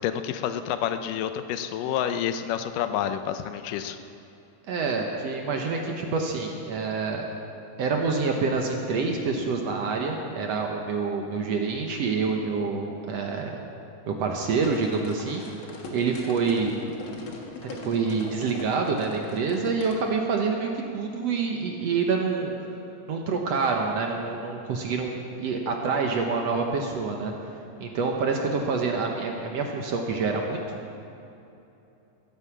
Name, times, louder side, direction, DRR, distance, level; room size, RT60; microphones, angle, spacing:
voice 1, 0.0-4.0, left 9 dB, 80° left, 9 dB, 2.3 m, -29 dB
voice 2, 4.7-7.3 7.8-13.6 14.1-15.4 15.9-16.7 17.6-22.5 23.1-27.3 27.8-30.6, right 4 dB, 65° right, 2 dB, 1.8 m, -27 dB
sound 1, 14.5-20.0, left 3 dB, 50° left, 1.8 m, -41 dB
15.0 x 10.5 x 7.4 m, 2.8 s
omnidirectional pair, 3.8 m